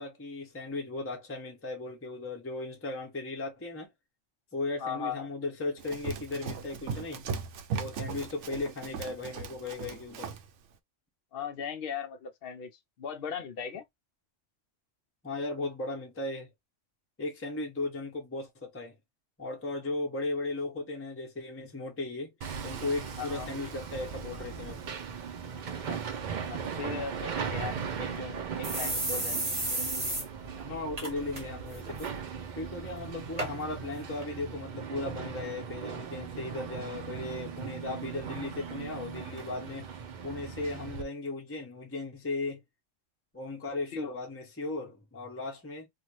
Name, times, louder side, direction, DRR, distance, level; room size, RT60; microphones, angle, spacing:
voice 1, 0.0-3.9 4.5-7.2 7.7-10.3 15.2-16.5 17.2-19.0 19.4-22.3 22.6-25.0 30.6-32.1 32.6-39.9 40.2-42.6 43.3-45.9, left 2 dB, 15° left, 0.7 m, -36 dB
voice 2, 4.8-5.3 11.3-12.7 13.0-13.8 23.2-23.5 25.9-26.0 26.5-29.5 43.9-44.2, left 6 dB, 60° left, 0.7 m, -38 dB
Run, 5.8-10.5, right 6 dB, 75° right, 0.9 m, -38 dB
Hammer, 22.4-41.0, right 6 dB, 55° right, 0.5 m, -38 dB
sound 1, 27.7-27.8 28.1-28.2 28.6-30.2 30.6-30.7 31.0-31.4 31.7-32.1 32.7-32.8 33.4-33.5 34.2-34.3, right 1 dB, 30° right, 1.1 m, -32 dB
2.7 x 2.4 x 3.0 m
omnidirectional pair, 1.3 m